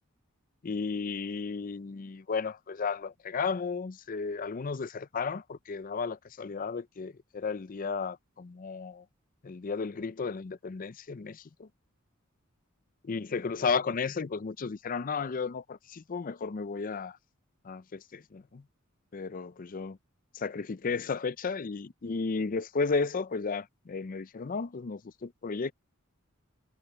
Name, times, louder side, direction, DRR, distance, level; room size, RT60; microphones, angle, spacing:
voice 1, 0.6-9.0 9.4-11.7 13.0-17.2 17.6-18.6 19.1-20.0 20.3-25.7, left 4 dB, 40° left, 0.5 m, -34 dB
head